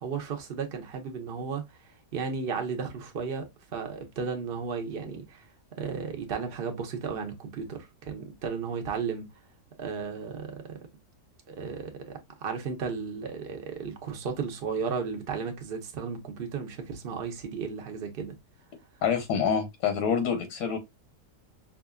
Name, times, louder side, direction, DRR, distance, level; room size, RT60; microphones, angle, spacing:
voice 1, 0.0-1.6 2.1-3.5 3.7-5.5 5.8-9.3 9.8-10.8 11.5-12.1 12.4-18.3, right 5 dB, 45° right, 0.8 m, -34 dB
voice 2, 19.0-20.8, left 7 dB, 80° left, 1.4 m, -26 dB
5.6 x 2.5 x 2.2 m
omnidirectional pair, 1.8 m